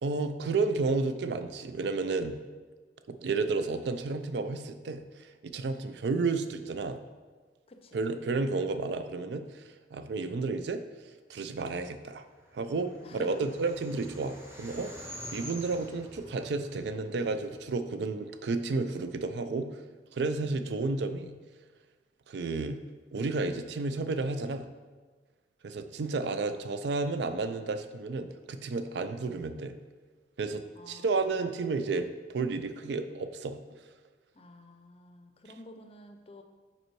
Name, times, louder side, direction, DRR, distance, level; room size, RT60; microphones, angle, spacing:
voice 1, 0.0-2.4 3.1-7.0 7.9-9.6 9.9-10.8 11.3-12.2 12.5-19.8 20.1-21.3 22.3-22.8 23.1-24.7 25.6-29.7 30.4-33.6, right 3 dB, 80° right, 9 dB, 0.4 m, -32 dB
voice 2, 7.7-8.0 13.0-13.4 30.7-31.4 34.3-36.4, left 1 dB, 35° left, 6 dB, 0.5 m, -51 dB
sound 1, 12.4-17.8, equal, 15° right, 0.8 m, -47 dB
5.3 x 4.3 x 4.6 m, 1.4 s
head